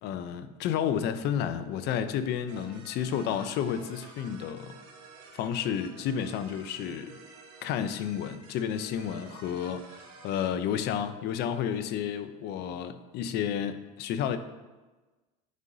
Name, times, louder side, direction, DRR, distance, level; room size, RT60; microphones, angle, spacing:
voice 1, 0.0-4.8 5.3-7.2 7.6-14.4, left 9 dB, 55° left, 11 dB, 0.6 m, -31 dB
sound 1, 2.5-10.5, right 4 dB, 70° right, 1.2 m, -51 dB
9.5 x 5.4 x 2.7 m, 1.2 s
supercardioid pair, 100°, 21 cm